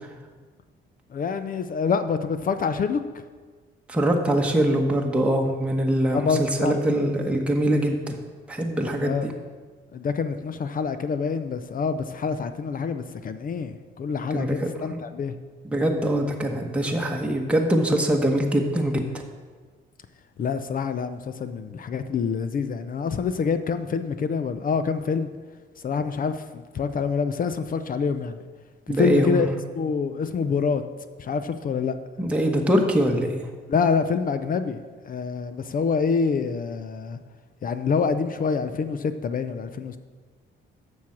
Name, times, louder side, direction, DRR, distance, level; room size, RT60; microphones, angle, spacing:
voice 1, 1.1-3.2 6.1-6.7 9.0-9.3 9.9-15.3 20.4-25.3 25.8-28.4 28.9-29.5 29.8-30.8 31.2-31.9 33.7-37.2 37.6-40.0, left 5 dB, 45° left, 10 dB, 0.5 m, -26 dB
voice 2, 3.9-8.2 8.5-9.3 14.3-15.0 15.6-19.0 28.9-29.4 32.2-33.5, right 1 dB, 5° right, 1 dB, 1.1 m, -23 dB
7.2 x 6.3 x 7.1 m, 1.5 s
cardioid pair, 90°, 20 cm